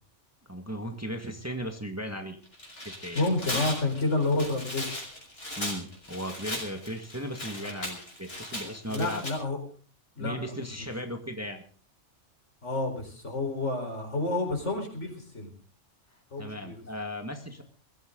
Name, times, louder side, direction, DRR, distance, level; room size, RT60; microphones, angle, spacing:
voice 1, 0.5-2.4 2.8-3.3 3.5-3.6 5.6-9.2 10.2-11.6 16.4-17.6, equal, 10° right, 4 dB, 1.8 m, -36 dB
Tearing, 2.5-9.3, left 1 dB, 50° left, 6.2 m, -37 dB
voice 2, 3.1-4.8 8.9-9.6 10.1-10.6 12.6-15.5 16.3-16.8, left 2 dB, 70° left, 3 dB, 4.8 m, -29 dB
21.5 x 15.0 x 3.9 m, 0.40 s
omnidirectional pair, 1.3 m